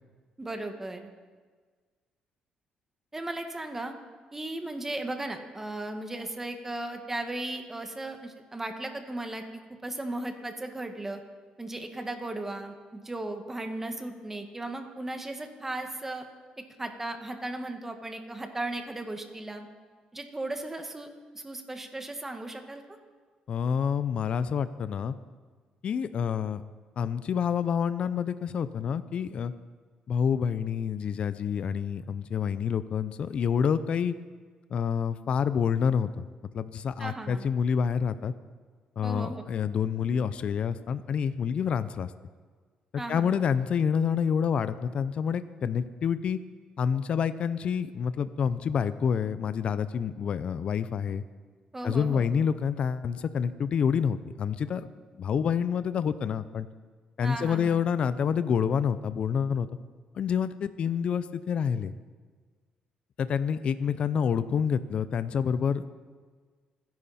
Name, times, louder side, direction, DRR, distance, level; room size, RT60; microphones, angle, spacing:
voice 1, 0.4-1.1 3.1-3.9 4.3-9.4 9.8-11.2 11.6-16.3 16.8-19.7 20.1-21.1 21.3-22.8 37.0-37.5 39.0-39.4 43.0-43.3 51.7-52.3 57.2-57.8, right 2 dB, 15° right, 5 dB, 1.7 m, -36 dB
voice 2, 23.5-25.1 25.8-26.6 27.0-29.5 30.1-34.1 34.7-36.2 36.5-38.3 39.0-42.1 43.1-46.4 46.8-51.2 51.8-54.9 55.2-56.7 57.2-59.7 60.1-61.9 63.2-65.8, left 7 dB, 55° left, 13 dB, 0.6 m, -28 dB
27.0 x 10.5 x 4.3 m, 1.5 s
cardioid pair, 105°, 2 cm